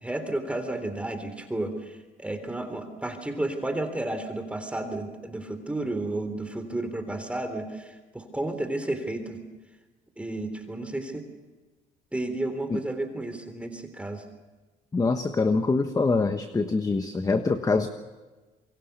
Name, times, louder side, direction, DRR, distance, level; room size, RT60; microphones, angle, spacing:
voice 1, 0.0-9.4 10.2-11.3 12.1-14.2, right 2 dB, 5° right, 7 dB, 3.5 m, -32 dB
voice 2, 14.9-17.9, left 3 dB, 20° left, 8 dB, 1.3 m, -24 dB
27.5 x 23.0 x 6.9 m, 1.3 s
cardioid pair, 110°, 17 cm